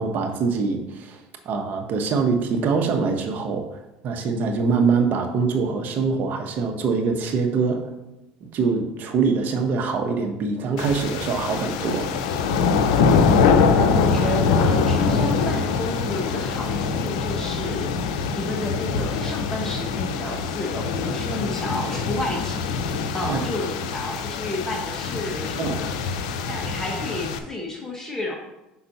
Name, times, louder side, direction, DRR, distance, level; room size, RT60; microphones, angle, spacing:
voice 1, 0.0-3.6 4.0-7.9 8.4-12.1 23.3-23.4 25.6-25.8, right 4 dB, 55° right, 5 dB, 1.1 m, -24 dB
sound 1, 10.8-27.4, left 5 dB, 85° left, 0.6 m, -23 dB
voice 2, 13.7-28.4, left 1 dB, 15° left, -1 dB, 1.4 m, -31 dB
5.6 x 4.3 x 5.5 m, 0.95 s
supercardioid pair, 95°, 4 cm